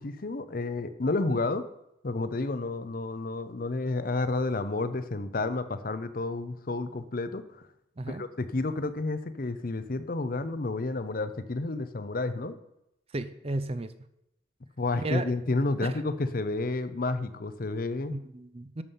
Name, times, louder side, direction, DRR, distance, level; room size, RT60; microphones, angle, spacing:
voice 1, 0.0-1.7 2.0-7.6 8.1-12.6 14.8-18.1, left 2 dB, 45° left, 12 dB, 0.7 m, -30 dB
voice 2, 13.1-13.9 15.0-15.2 15.8-15.9 18.1-18.8, right 2 dB, 30° right, 12 dB, 0.6 m, -34 dB
11.0 x 6.9 x 5.6 m, 0.83 s
head